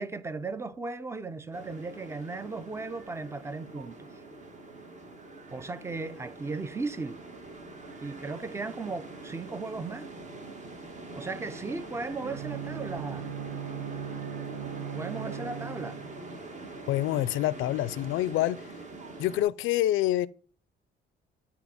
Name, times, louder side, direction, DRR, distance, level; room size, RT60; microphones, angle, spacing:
voice 1, 0.0-4.1 5.5-7.2 8.0-10.1 11.1-13.3 14.9-16.0, right 3 dB, 15° right, 0.5 m, -36 dB
sound 1, 1.5-19.4, right 2 dB, 35° right, 1.4 m, -44 dB
Bowed string instrument, 12.2-16.4, right 8 dB, 90° right, 0.8 m, -38 dB
voice 2, 16.9-18.7 19.2-20.3, left 14 dB, 80° left, 0.4 m, -26 dB
8.1 x 2.9 x 5.0 m
cardioid pair, 90°, 20 cm